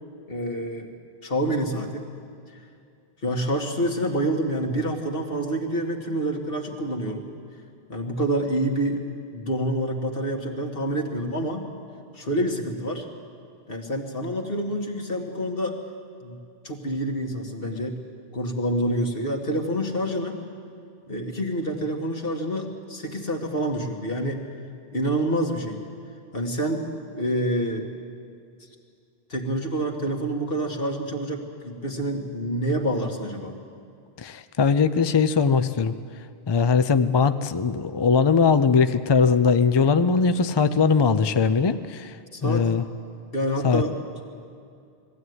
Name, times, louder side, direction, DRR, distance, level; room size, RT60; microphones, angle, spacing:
voice 1, 0.3-0.9 1.2-2.1 3.2-7.2 7.9-11.7 12.1-13.1 13.7-15.8 16.2-16.4 16.6-18.0 18.3-20.4 21.1-24.5 24.9-25.8 26.3-27.9 29.3-33.6 42.3-42.7 43.3-44.3, right 1 dB, 60° left, 2 dB, 2.1 m, -27 dB
voice 2, 34.2-35.9 36.5-42.2 42.4-42.8 43.6-43.8, left 5 dB, 35° left, 11 dB, 0.4 m, -20 dB
20.5 x 15.0 x 9.5 m, 2.4 s
omnidirectional pair, 1.1 m